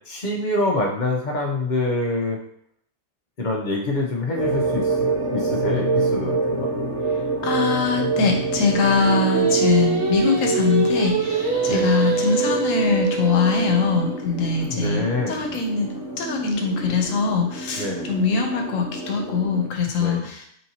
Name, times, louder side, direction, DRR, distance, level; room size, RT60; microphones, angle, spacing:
voice 1, 0.1-2.4 3.4-5.0 5.3-6.7 11.7-11.9 14.7-15.4 17.8-18.1 20.0-20.2, left 2 dB, 40° left, 0 dB, 0.8 m, -25 dB
sound 1, 4.3-19.7, right 3 dB, 65° right, 1.2 m, -27 dB
voice 2, 7.4-20.5, left 4 dB, 90° left, 2 dB, 1.1 m, -22 dB
Singing, 9.0-14.2, right 5 dB, 80° right, 1.4 m, -25 dB
4.3 x 3.8 x 2.8 m, 0.67 s
omnidirectional pair, 1.3 m